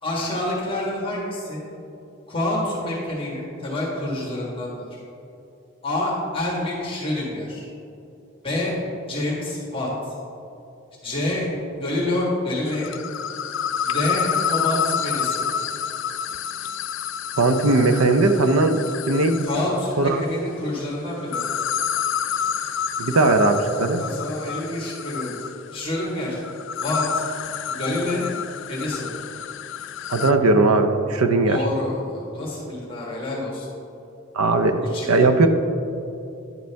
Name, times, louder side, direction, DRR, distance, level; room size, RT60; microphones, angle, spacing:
voice 1, 0.0-1.6 2.3-5.0 5.8-7.7 8.4-8.8 9.1-9.9 11.0-12.9 13.8-15.4 19.4-21.4 24.0-25.3 25.7-26.4 26.8-27.2 27.7-28.2 28.7-29.1 31.5-33.7 34.9-35.3, left 1 dB, 25° left, -5 dB, 1.5 m, -27 dB
sound 1, 12.7-19.8 21.2-30.3, left 8 dB, 55° left, 0.3 m, -29 dB
voice 2, 17.4-18.8 19.1-19.5 20.0-20.2 23.0-24.0 30.1-31.6 34.3-35.5, right 2 dB, 80° right, 7 dB, 0.6 m, -18 dB
11.0 x 7.7 x 3.4 m, 2.8 s
head